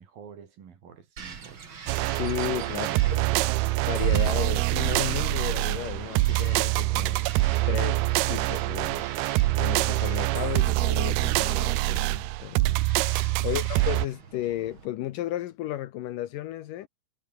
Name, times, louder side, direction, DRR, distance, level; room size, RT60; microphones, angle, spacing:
voice 1, 0.0-1.8 2.7-3.8 13.4-13.7, right 7 dB, 60° right, 4.5 m, -46 dB
Bird vocalization bird call bird song, 1.2-14.9, right 6 dB, 35° right, 2.7 m, -45 dB
sound 1, 1.9-14.1, right 19 dB, 80° right, 2.5 m, -25 dB
voice 2, 2.1-3.2 3.9-7.2 7.7-9.1 9.6-12.8 13.4-16.9, left 14 dB, 75° left, 2.0 m, -34 dB
omnidirectional pair, 4.8 m